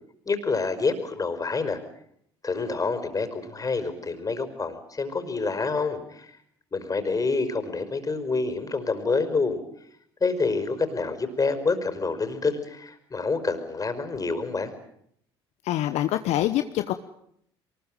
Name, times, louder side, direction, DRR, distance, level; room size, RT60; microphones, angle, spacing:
voice 1, 0.3-1.8 2.4-6.4 6.7-9.6 10.2-14.7, left 4 dB, 30° left, 10 dB, 5.3 m, -27 dB
voice 2, 15.6-16.9, left 13 dB, 65° left, 10 dB, 1.1 m, -25 dB
23.5 x 21.0 x 9.1 m, 0.71 s
hypercardioid pair, 60°, 12 cm